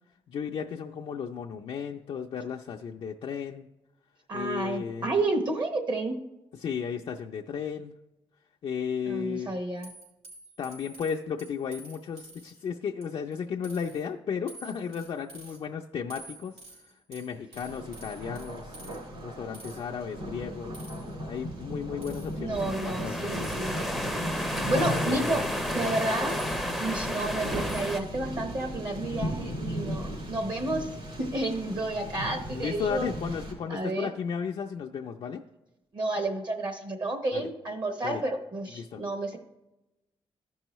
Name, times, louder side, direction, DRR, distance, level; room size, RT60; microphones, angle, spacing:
voice 1, 0.3-3.7 4.3-5.1 6.6-7.9 8.6-9.6 10.6-16.6 17.1-20.7 21.3-23.5 24.6-25.4 32.5-35.4 37.3-37.5 38.0-38.2 38.7-39.0, left 7 dB, 60° left, 1 dB, 0.4 m, -34 dB
voice 2, 4.3-6.2 9.1-9.9 22.4-23.7 24.6-25.4 25.7-26.4 26.7-30.9 31.2-33.1 33.7-34.1 35.9-39.4, right 2 dB, 45° right, 5 dB, 0.9 m, -31 dB
sound 1, 9.8-12.6 13.0-13.4 13.6-14.0 14.5-15.6 16.1-19.0 19.5-19.8 20.7-21.1 22.0-22.4 23.4-23.7 24.8-25.3 26.3-26.9 27.7-28.1, right 2 dB, 85° right, 3.1 m, -49 dB
Thunder, 17.5-33.5, equal, 65° right, 3.4 m, -37 dB
sound 2, 22.5-28.0, equal, ahead, 0.5 m, -32 dB
14.0 x 5.5 x 3.0 m, 0.97 s
wide cardioid pair, 145°, 10 cm